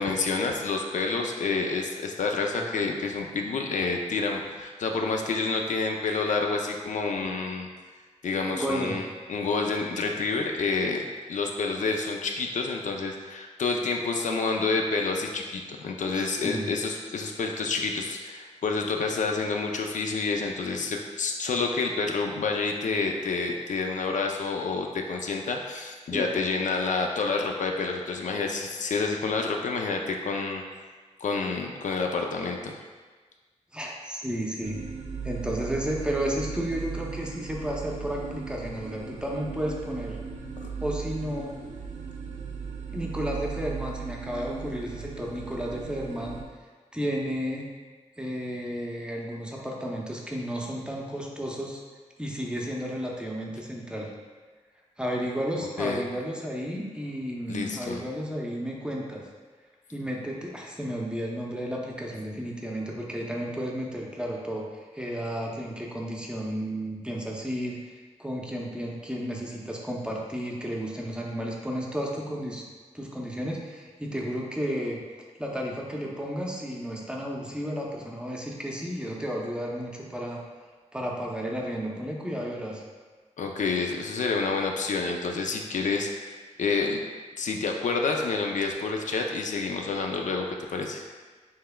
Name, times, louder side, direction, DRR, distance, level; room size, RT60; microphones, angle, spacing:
voice 1, 0.0-7.7 8.2-30.6 31.2-32.7 40.6-40.7 55.8-56.0 57.5-58.0 83.4-87.0 87.4-90.5 90.7-91.0, left 4 dB, 80° left, 2 dB, 0.4 m, -28 dB
voice 2, 8.5-9.0 16.0-16.7 26.1-26.3 33.7-34.8 35.2-40.2 40.8-41.5 42.9-46.4 46.9-47.7 48.2-51.8 52.2-54.1 55.0-59.2 59.9-72.6 72.9-75.0 75.4-80.4 80.9-82.8, equal, 5° right, -2 dB, 0.6 m, -32 dB
sound 1, 34.6-46.4, right 5 dB, 70° right, 0.5 m, -37 dB
5.5 x 3.3 x 2.2 m, 1.4 s
wide cardioid pair, 120°, 13 cm